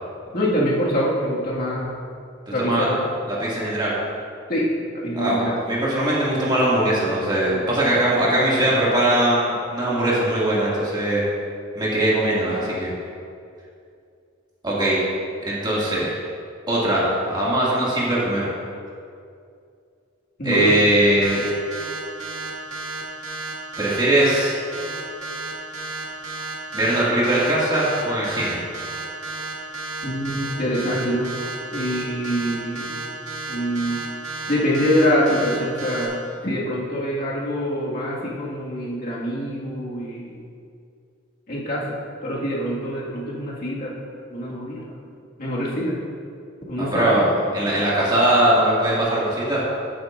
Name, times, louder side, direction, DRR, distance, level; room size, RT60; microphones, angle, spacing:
voice 1, 0.3-1.9 2.5-3.0 4.5-4.7 4.9-5.5 20.4-20.7 30.0-31.3 31.7-32.9 33.5-34.0 34.5-36.1 36.4-40.4 41.5-41.9 42.2-43.9 44.3-44.8 45.4-46.0 46.7-47.3, equal, 50° left, -6 dB, 2.0 m, -24 dB
voice 2, 2.5-2.9 3.3-3.9 5.1-11.2 11.7-12.9 14.6-15.0 15.5-16.2 16.7-18.5 20.4-21.4 23.8-24.6 26.7-28.6 46.8-49.6, right 1 dB, 20° right, -7 dB, 2.3 m, -21 dB
sound 1, 21.2-36.1, right 3 dB, 80° right, 2.1 m, -32 dB
13.5 x 8.8 x 2.6 m, 2.4 s
head